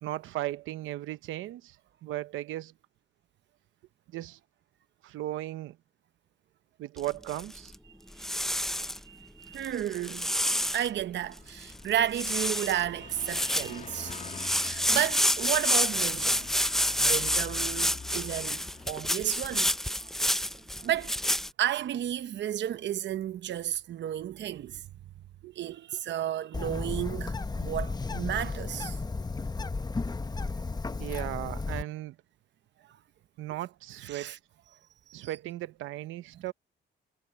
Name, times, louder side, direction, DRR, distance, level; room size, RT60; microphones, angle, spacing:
voice 1, 0.0-1.8 2.0-2.7 4.1-4.4 5.0-5.8 6.8-7.7 25.4-25.5 31.0-32.2 33.4-34.3 35.1-36.5, right 15 dB, 90° right, 0.9 m, -36 dB
sound 1, 7.0-7.7 8.2-9.0 9.6-10.9 11.4-11.5 11.6-11.9 12.1-12.8 13.1-21.5, equal, ahead, 0.5 m, -28 dB
voice 2, 9.1-10.3 10.7-14.1 14.6-16.5 17.0-20.4 20.8-21.2 21.6-24.8 25.6-29.0 34.0-34.4 35.1-35.2, right 11 dB, 65° right, 0.9 m, -32 dB
Car passing by, 11.4-19.8, left 5 dB, 35° left, 2.3 m, -46 dB
Bird, 26.5-31.8, left 3 dB, 20° left, 1.1 m, -34 dB
cardioid pair, 90°, 20 cm